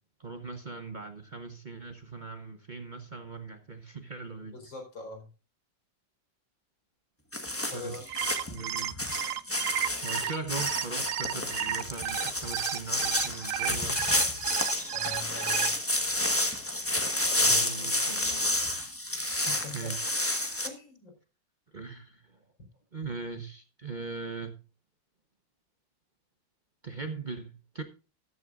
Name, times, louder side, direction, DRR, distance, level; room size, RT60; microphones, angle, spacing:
voice 1, 0.2-4.6 7.7-8.2 8.5-9.0 10.0-14.1 17.5-18.6 19.7-20.1 21.7-22.4 22.9-24.6 26.8-27.8, right 4 dB, 30° right, 1.0 m, -40 dB
voice 2, 4.4-5.3 7.6-8.0 14.9-15.8 17.3-18.0 19.3-19.9 20.6-21.1, left 3 dB, 90° left, 5.4 m, -43 dB
sound 1, 7.3-20.7, left 1 dB, 10° left, 1.1 m, -30 dB
sound 2, 7.9-15.7, right 11 dB, 65° right, 0.9 m, -33 dB
13.5 x 12.5 x 2.5 m
omnidirectional pair, 2.0 m